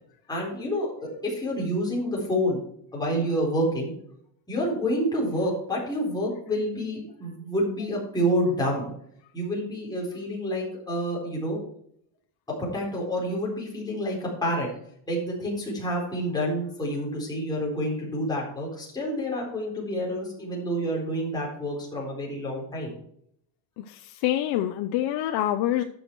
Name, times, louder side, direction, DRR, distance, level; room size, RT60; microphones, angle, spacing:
voice 1, 0.3-2.6 2.9-3.9 4.5-8.9 9.3-11.6 12.7-14.7 15.1-22.9, equal, 10° left, -4 dB, 4.3 m, -28 dB
voice 2, 23.8-25.8, left 13 dB, 70° left, 7 dB, 0.8 m, -26 dB
12.0 x 6.4 x 4.7 m, 0.69 s
cardioid pair, 155°, 42 cm